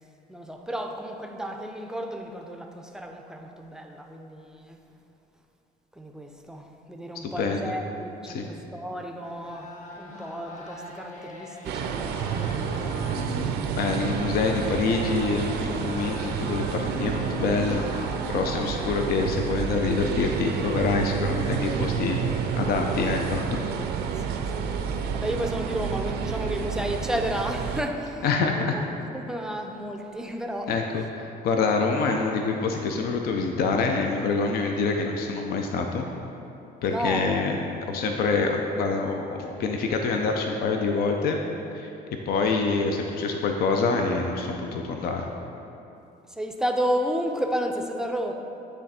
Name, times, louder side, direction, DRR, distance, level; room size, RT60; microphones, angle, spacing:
voice 1, 0.3-4.8 5.9-12.2 18.5-18.7 24.2-24.7 25.1-28.2 28.5-28.8 29.1-30.8 36.9-37.4 46.3-48.3, equal, 5° right, 3 dB, 0.5 m, -32 dB
voice 2, 7.2-7.7 8.3-8.5 13.2-17.9 18.3-23.6 28.2-28.8 30.7-36.1 36.8-37.6 37.9-41.4 41.7-41.9 42.3-45.3, left 4 dB, 65° left, 3 dB, 0.6 m, -26 dB
sound 1, 9.2-13.5 13.8-19.2, left 1 dB, 50° left, 1.0 m, -41 dB
sound 2, 11.6-27.8, right 7 dB, 75° right, 0.5 m, -29 dB
8.8 x 3.4 x 4.2 m, 2.8 s
cardioid pair, 110°, 17 cm